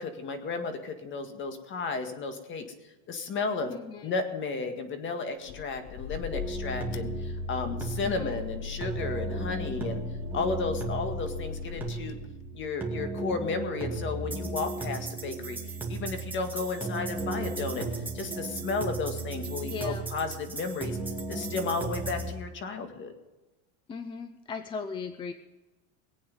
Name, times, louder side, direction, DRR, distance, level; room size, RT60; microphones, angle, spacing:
voice 1, 0.0-2.7 3.1-3.7 4.0-10.0 10.3-12.2 12.5-15.6 15.9-21.0 21.3-23.1, left 4 dB, 30° left, 7 dB, 1.9 m, -33 dB
voice 2, 3.7-4.1 8.0-8.4 19.6-20.0 23.9-25.3, left 5 dB, 15° left, 10 dB, 0.4 m, -37 dB
sound 1, 5.4-12.8, left 6 dB, 70° left, 1.3 m, -38 dB
sound 2, 6.3-22.3, right 3 dB, 5° right, 2.3 m, -35 dB
21.5 x 8.7 x 5.4 m, 1.1 s
cardioid pair, 160°, 39 cm